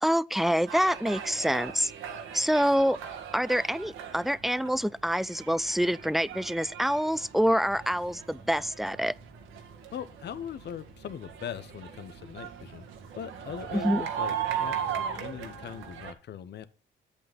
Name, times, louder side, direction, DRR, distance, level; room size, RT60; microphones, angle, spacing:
voice 1, 0.0-1.9 2.3-3.0 3.3-9.1 13.8-14.0, equal, ahead, 0.3 m, -26 dB
sound 1, 0.7-16.1, right 8 dB, 85° right, 1.7 m, -38 dB
voice 2, 9.9-12.9 13.2-16.7, left 9 dB, 60° left, 0.9 m, -40 dB
8.4 x 8.1 x 3.5 m
cardioid pair, 90°, 20 cm